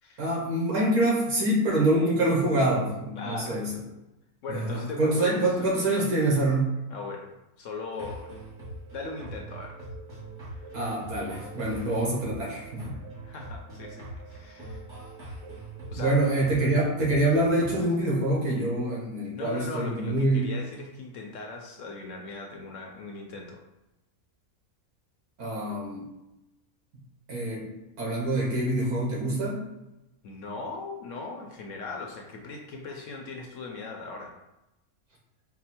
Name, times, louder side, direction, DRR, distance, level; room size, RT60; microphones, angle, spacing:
voice 1, 0.2-3.7 4.5-6.7 10.7-13.0 16.0-20.5 25.4-26.0 27.3-27.7 28.0-29.6, right 1 dB, 75° right, -4 dB, 1.6 m, -25 dB
voice 2, 3.2-3.6 4.4-5.7 6.9-8.3 8.9-9.8 10.6-10.7 11.7-11.9 13.2-14.9 15.9-16.2 19.3-23.6 30.2-34.3, left 3 dB, 65° left, 1 dB, 0.8 m, -39 dB
sound 1, 7.9-17.7, right 2 dB, 35° right, 1.3 m, -42 dB
4.9 x 2.0 x 4.3 m, 0.95 s
omnidirectional pair, 1.6 m